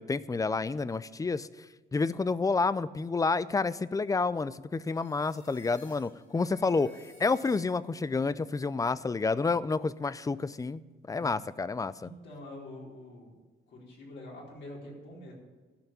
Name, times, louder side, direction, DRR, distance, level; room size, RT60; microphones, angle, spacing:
voice 1, 0.0-1.5 1.9-6.9 7.2-10.8 11.1-11.9, left 4 dB, 15° left, 18 dB, 0.4 m, -29 dB
sound 1, 4.7-8.1, left 2 dB, 90° left, 2.4 m, -58 dB
voice 2, 11.1-11.4 12.0-13.3 13.7-15.3, left 1 dB, 70° left, -3 dB, 4.4 m, -46 dB
13.0 x 5.7 x 8.6 m, 1.3 s
cardioid pair, 90°, 20 cm